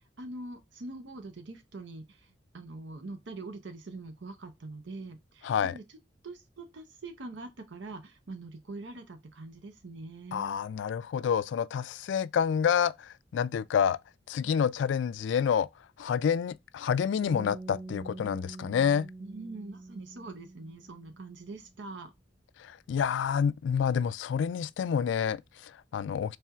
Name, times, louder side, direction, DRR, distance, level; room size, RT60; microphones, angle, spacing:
voice 1, 0.2-5.8 6.2-10.6 19.2-22.1, right 2 dB, 80° right, 0.7 m, -43 dB
voice 2, 5.4-5.8 10.3-14.0 14.3-15.7 16.0-19.1 22.6-26.4, left 7 dB, 80° left, 0.3 m, -28 dB
sound 1, 17.2-21.4, right 2 dB, 30° right, 1.4 m, -45 dB
4.3 x 3.3 x 2.3 m
head